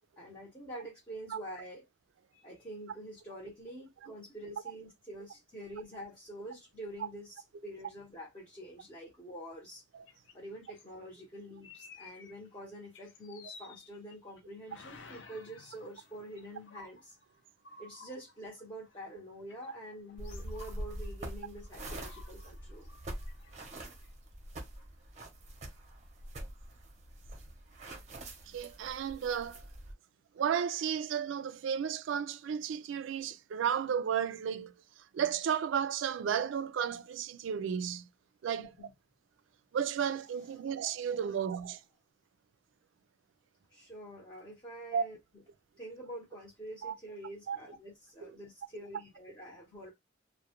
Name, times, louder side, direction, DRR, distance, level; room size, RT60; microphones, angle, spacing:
voice 1, 0.2-1.9 2.3-9.8 10.3-17.1 17.8-22.9 38.6-38.9 40.6-40.7 43.7-45.2 45.8-49.9, right 1 dB, 20° left, 0.7 m, -46 dB
sound 1, 10.1-10.9 11.6-12.6 12.9-14.4 14.7-19.2 19.5-21.3 21.6-24.1, left 4 dB, 65° left, 0.5 m, -55 dB
sound 2, 20.2-29.9, right 1 dB, 35° right, 0.6 m, -45 dB
voice 2, 28.5-29.6 30.4-34.7 35.1-38.1 38.4-38.9 39.7-41.8 44.9-45.0 46.8-46.9 47.5-47.6 48.2-48.3 48.7-48.8, right 8 dB, 70° right, 0.3 m, -33 dB
2.2 x 2.0 x 2.8 m
head